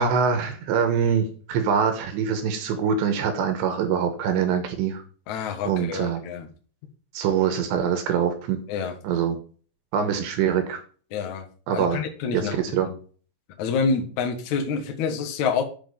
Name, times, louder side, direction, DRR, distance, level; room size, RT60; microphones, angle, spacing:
voice 1, 0.0-5.0 5.7-6.2 7.1-8.6 9.0-9.4 9.9-10.8 11.7-12.0 12.3-12.9, right 7 dB, 70° right, 7 dB, 2.9 m, -24 dB
voice 2, 5.3-6.5 8.7-8.9 11.1-11.4 11.7-12.6 12.8-12.9 13.6-15.6, left 5 dB, 90° left, 4 dB, 1.6 m, -27 dB
8.4 x 5.6 x 5.4 m, 0.41 s
omnidirectional pair, 5.9 m